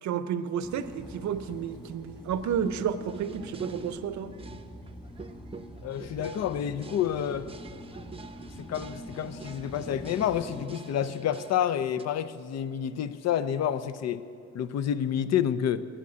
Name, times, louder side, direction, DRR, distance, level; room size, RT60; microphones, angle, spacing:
voice 1, 0.0-4.3, right 8 dB, 70° right, 0.7 m, -31 dB
sound 1, 0.6-10.7, equal, 15° left, 1.6 m, -45 dB
sound 2, 2.6-12.0, right 4 dB, 20° right, 0.7 m, -45 dB
voice 2, 5.8-7.5 8.6-14.3 14.5-15.9, left 9 dB, 60° left, 0.6 m, -29 dB
10.0 x 8.2 x 9.6 m
cardioid pair, 90°, 30 cm